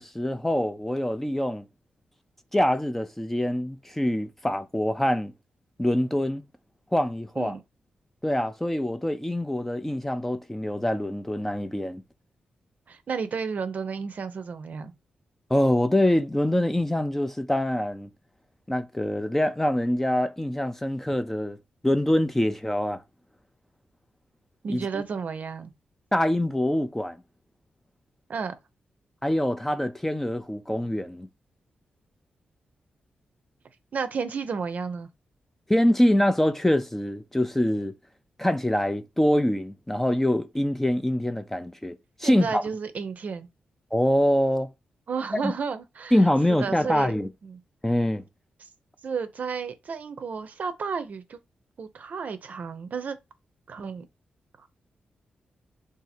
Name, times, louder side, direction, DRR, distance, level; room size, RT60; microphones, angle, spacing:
voice 1, 0.0-1.6 2.5-5.3 5.8-6.4 6.9-7.5 8.2-12.0 15.5-18.1 18.7-21.6 21.8-23.0 24.7-24.8 26.1-27.2 29.2-31.3 35.7-37.9 38.4-41.9 42.2-42.6 43.9-44.7 45.4-45.5 46.1-47.3 47.8-48.2, left 1 dB, 10° left, 0.4 m, -24 dB
voice 2, 12.9-14.9 24.6-25.7 28.3-28.6 33.9-35.1 42.2-43.5 45.1-46.2 46.5-47.2 47.4-47.6 48.6-48.7 49.0-51.4 51.8-53.2 53.7-54.1 54.6-54.7, right 5 dB, 60° right, 0.5 m, -32 dB
2.7 x 2.4 x 4.1 m
cardioid pair, 85°, 3 cm